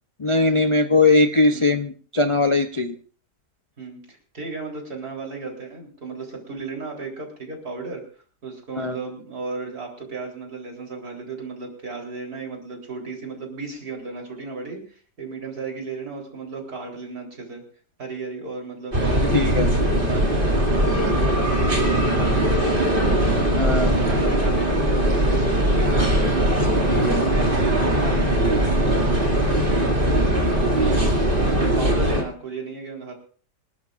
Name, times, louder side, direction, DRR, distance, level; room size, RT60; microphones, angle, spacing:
voice 1, 0.2-2.9 8.8-9.0 19.3-19.7 23.6-23.9 26.9-27.2, left 3 dB, 55° left, 7 dB, 0.3 m, -20 dB
voice 2, 3.8-8.0 8.4-17.6 18.0-20.2 20.8-23.2 23.7-26.5 27.3-29.2 29.5-31.1 31.4-33.1, right 4 dB, 60° right, 1 dB, 4.3 m, -35 dB
sound 1, 18.9-32.2, right 1 dB, 30° right, 2.8 m, -20 dB
26.5 x 12.5 x 2.5 m, 0.43 s
omnidirectional pair, 1.8 m